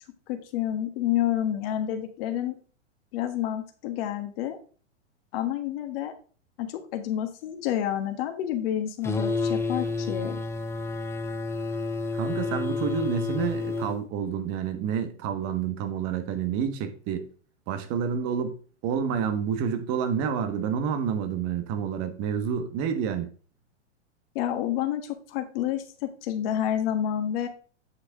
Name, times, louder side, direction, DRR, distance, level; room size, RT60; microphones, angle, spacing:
voice 1, 0.3-2.6 3.1-4.6 5.3-6.1 6.6-10.4 24.3-27.5, left 11 dB, 55° left, 6 dB, 1.4 m, -29 dB
sound 1, 9.0-14.0, left 3 dB, 5° left, 0.6 m, -30 dB
voice 2, 12.1-17.3 17.7-18.6 18.8-23.3, right 7 dB, 45° right, 8 dB, 1.4 m, -29 dB
7.7 x 5.8 x 3.7 m, 0.40 s
hypercardioid pair, 115°, 35 cm